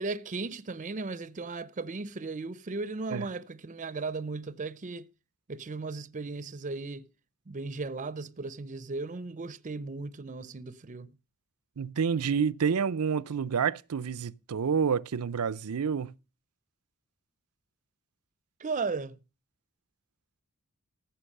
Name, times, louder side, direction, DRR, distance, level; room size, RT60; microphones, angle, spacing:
voice 1, 0.0-5.1 5.5-7.1 7.5-11.1 18.6-19.2, right 3 dB, 35° right, 0.6 m, -36 dB
voice 2, 11.8-16.1, right 6 dB, 85° right, 0.5 m, -28 dB
14.5 x 5.9 x 6.6 m
head